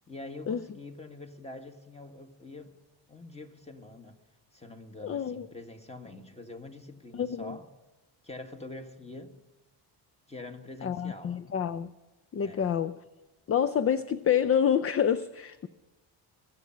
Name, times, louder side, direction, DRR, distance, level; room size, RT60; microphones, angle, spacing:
voice 1, 0.1-2.7 3.1-4.2 4.5-7.7 8.2-9.3 10.3-11.4 12.4-12.7, left 2 dB, 15° left, 1.6 m, -45 dB
voice 2, 5.0-5.5 7.2-7.6 10.8-11.9 12.3-13.0 13.5-15.7, left 8 dB, 30° left, 0.5 m, -27 dB
22.0 x 7.5 x 5.8 m
cardioid pair, 85°, 46 cm